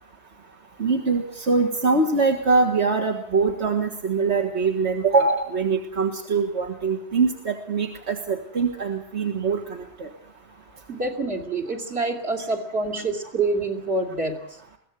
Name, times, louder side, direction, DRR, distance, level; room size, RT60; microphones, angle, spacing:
voice 1, 0.8-10.1 12.4-12.5, right 4 dB, 80° right, 2 dB, 2.1 m, -23 dB
voice 2, 10.9-14.6, right 3 dB, 65° right, 3 dB, 3.3 m, -27 dB
22.5 x 16.0 x 8.3 m, 0.66 s
omnidirectional pair, 1.1 m